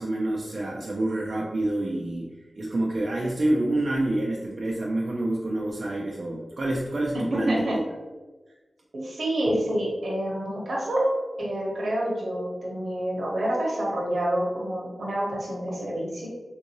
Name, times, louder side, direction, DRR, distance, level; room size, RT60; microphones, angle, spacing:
voice 1, 0.0-7.8, right 1 dB, 55° right, -3 dB, 0.4 m, -27 dB
voice 2, 7.3-7.8 8.9-11.1 11.4-16.3, right 1 dB, 75° right, -3 dB, 1.0 m, -28 dB
3.6 x 2.6 x 2.9 m, 1.3 s
wide cardioid pair, 115°, 0 cm